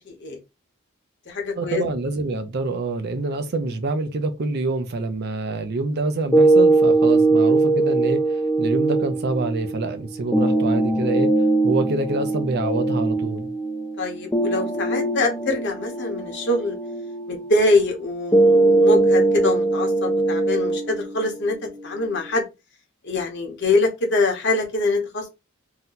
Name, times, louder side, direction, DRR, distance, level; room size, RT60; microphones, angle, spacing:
voice 1, 0.1-0.4 1.3-1.8 14.0-16.8 17.3-21.5 21.8-22.4 23.0-25.3, left 2 dB, 60° left, 1.0 m, -24 dB
voice 2, 1.6-11.3 11.6-13.5, right 2 dB, 50° right, 0.5 m, -26 dB
sound 1, 6.3-22.3, right 2 dB, 10° left, 0.4 m, -21 dB
2.8 x 2.2 x 3.9 m
head